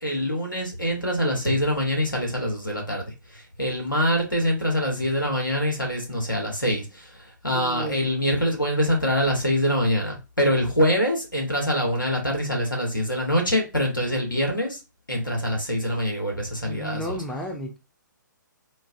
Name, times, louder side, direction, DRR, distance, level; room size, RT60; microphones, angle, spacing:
voice 1, 0.0-14.8 15.1-17.2, equal, 90° left, 1 dB, 1.5 m, -25 dB
voice 2, 7.6-8.0 16.7-17.8, equal, 5° left, 3 dB, 0.4 m, -33 dB
4.4 x 2.1 x 2.6 m, 0.28 s
figure-of-eight pair, 130°, 11 cm